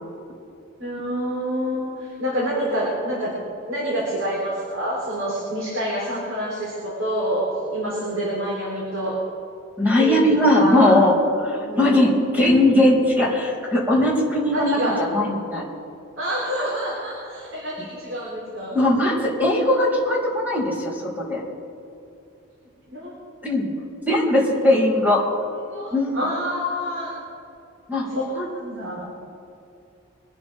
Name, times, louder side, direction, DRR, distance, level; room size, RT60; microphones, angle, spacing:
voice 1, 0.8-3.3 3.7-7.4 7.7-9.1 10.0-10.2 10.6-11.0 11.6-12.0 14.5-15.0 16.2-18.8 22.9-23.1 24.5-24.6 25.7-27.2 28.1-28.2 28.5-29.1, equal, 65° right, -6 dB, 4.0 m, -27 dB
voice 2, 9.8-11.1 11.4-15.6 18.7-21.4 23.4-23.7 24.1-25.2 25.9-26.1 27.9-28.1 28.3-28.5, left 1 dB, 10° right, -7 dB, 4.2 m, -19 dB
24.0 x 11.0 x 3.7 m, 2.7 s
head